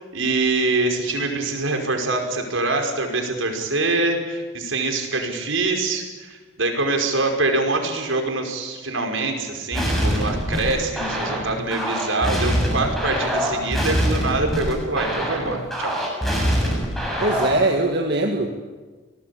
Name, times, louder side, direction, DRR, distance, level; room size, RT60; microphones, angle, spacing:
voice 1, 0.0-16.0, right 3 dB, 80° right, 3 dB, 5.2 m, -24 dB
sound 1, 9.7-17.7, equal, ahead, 7.3 m, -24 dB
voice 2, 17.2-18.5, right 2 dB, 55° right, 1 dB, 2.1 m, -21 dB
28.5 x 19.5 x 8.6 m, 1.3 s
head